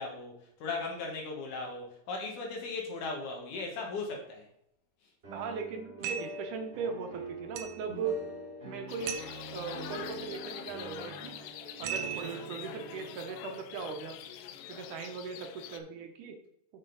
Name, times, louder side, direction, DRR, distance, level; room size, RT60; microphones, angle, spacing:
voice 1, 0.0-4.5, left 3 dB, 70° left, 1 dB, 2.8 m, -37 dB
sound 1, 5.2-15.2, right 2 dB, 20° right, 2.1 m, -45 dB
voice 2, 5.3-8.2 8.7-9.2 9.5-11.4 11.8-14.2 14.7-16.4, right 5 dB, 75° right, 4 dB, 2.2 m, -38 dB
sound 2, 6.0-6.5 7.6-7.9 9.1-9.4 11.8-12.5, right 8 dB, 90° right, 2.4 m, -37 dB
sound 3, 8.9-15.8, left 11 dB, 90° left, 2.3 m, -45 dB
6.8 x 6.2 x 3.9 m, 0.73 s
omnidirectional pair, 3.9 m